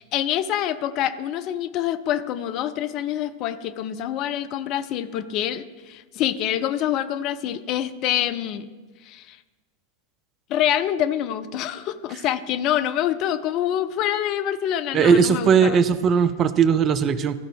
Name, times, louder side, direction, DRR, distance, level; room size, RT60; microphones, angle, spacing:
voice 1, 0.0-8.7 9.0-9.4 10.5-15.8, left 11 dB, 40° left, 11 dB, 0.5 m, -26 dB
voice 2, 14.9-17.4, right 6 dB, 30° right, 13 dB, 0.4 m, -18 dB
15.0 x 5.0 x 3.6 m, 1.3 s
figure-of-eight pair, 90°, 0 cm